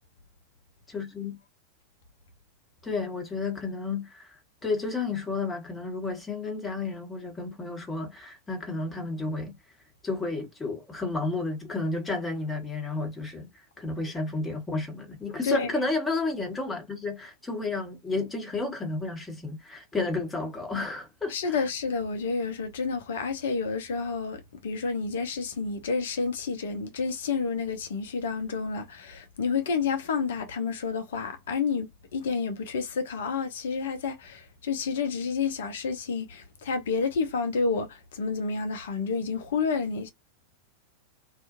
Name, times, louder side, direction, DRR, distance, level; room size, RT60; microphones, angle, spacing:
voice 1, 0.9-1.4 2.8-4.4 4.6-9.5 10.0-13.5 13.8-21.3, left 3 dB, 10° left, 1.1 m, -31 dB
voice 2, 15.4-15.8 21.3-40.1, left 5 dB, 60° left, 0.6 m, -30 dB
2.5 x 2.4 x 2.5 m
figure-of-eight pair, 90°, 0 cm